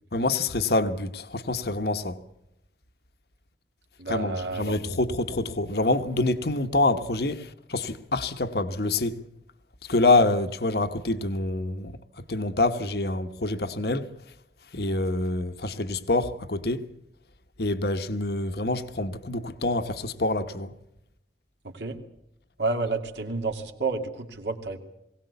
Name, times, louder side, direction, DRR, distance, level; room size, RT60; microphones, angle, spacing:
voice 1, 0.1-2.2 4.1-9.2 9.8-12.0 12.3-14.1 14.7-16.8 17.6-20.7, left 2 dB, 65° left, 1.2 m, -26 dB
voice 2, 4.0-4.7 21.6-22.0 22.6-24.8, right 3 dB, 80° right, 2.6 m, -30 dB
21.5 x 17.5 x 8.2 m
head